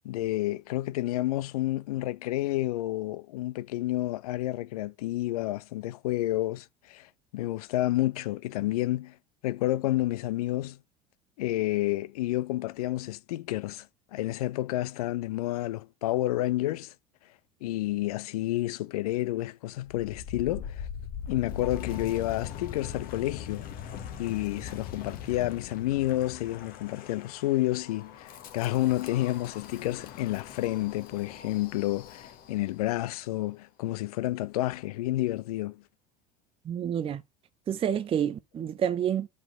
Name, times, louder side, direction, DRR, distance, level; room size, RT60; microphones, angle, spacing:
voice 1, 0.0-9.2 9.4-10.8 11.4-13.9 14.1-16.9 17.6-20.9 21.3-23.6 24.2-35.8, left 16 dB, 60° left, 0.6 m, -30 dB
Wind, 19.9-32.8, left 8 dB, 45° left, 1.4 m, -41 dB
voice 2, 36.6-37.2 37.7-39.3, right 9 dB, 25° right, 0.6 m, -28 dB
5.8 x 5.3 x 5.3 m
figure-of-eight pair, 70°, 21 cm